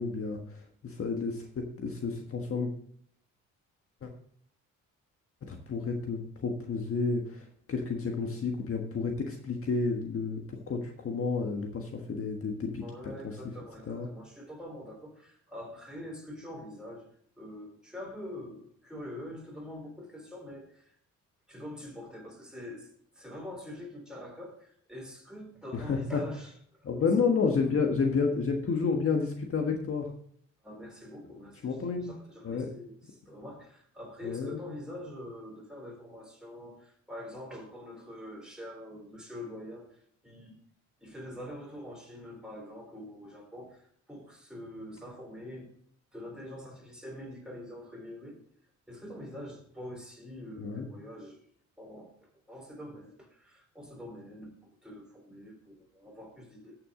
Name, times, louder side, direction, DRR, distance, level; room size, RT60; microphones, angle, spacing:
voice 1, 0.0-2.7 4.0-4.1 5.4-12.8 13.9-14.1 25.7-26.2 26.8-30.1 31.6-32.1 32.4-32.7 34.2-34.6 50.6-50.9, left 4 dB, 45° left, 3 dB, 1.5 m, -30 dB
voice 2, 12.8-17.1 17.4-20.9 21.5-26.8 30.6-40.6 41.0-45.7 46.1-48.4 48.9-51.5 51.8-54.5 54.8-56.8, left 1 dB, 5° right, 0 dB, 4.0 m, -45 dB
13.5 x 6.3 x 3.8 m, 0.62 s
cardioid pair, 90°, 30 cm